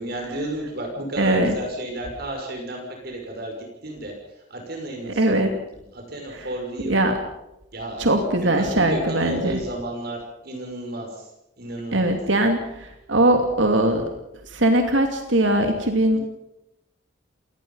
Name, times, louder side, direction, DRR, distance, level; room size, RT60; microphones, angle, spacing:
voice 1, 0.0-7.0 7.7-8.0 8.4-11.3 11.6-12.2, right 1 dB, 50° right, 1 dB, 6.0 m, -33 dB
voice 2, 1.2-1.5 5.2-5.5 6.8-7.1 8.0-9.6 11.9-14.1 14.5-16.2, right 1 dB, 75° right, 5 dB, 2.7 m, -20 dB
28.5 x 19.5 x 5.6 m, 0.86 s
head